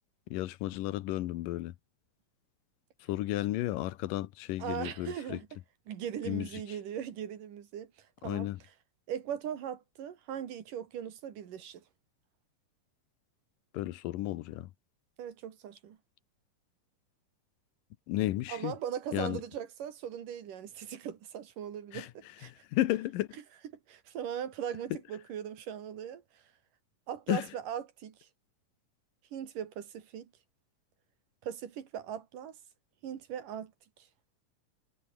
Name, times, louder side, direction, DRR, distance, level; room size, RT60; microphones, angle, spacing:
voice 1, 0.3-1.7 3.1-5.4 6.3-6.5 8.2-8.6 13.7-14.7 18.1-18.7 19.1-19.4 21.9-22.1 22.7-23.3 27.3-27.5, left 15 dB, 85° left, 2.6 m, -32 dB
voice 2, 4.6-5.6 5.9-8.5 9.1-11.8 15.2-16.0 18.5-22.5 23.9-26.4 27.1-28.3 29.3-30.3 31.4-32.6 33.0-33.7, right 9 dB, 75° right, 3.8 m, -39 dB
omnidirectional pair, 3.8 m